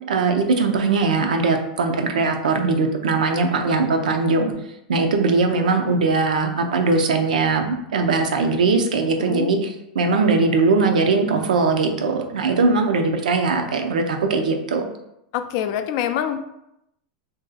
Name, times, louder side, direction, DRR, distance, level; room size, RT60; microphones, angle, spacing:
voice 1, 0.1-4.5 4.9-9.7 9.9-14.9, right 4 dB, 90° right, 4 dB, 0.5 m, -20 dB
voice 2, 9.2-9.5 15.3-16.4, left 10 dB, 55° left, 8 dB, 0.3 m, -25 dB
2.6 x 2.3 x 3.9 m, 0.82 s
hypercardioid pair, 120°, 4 cm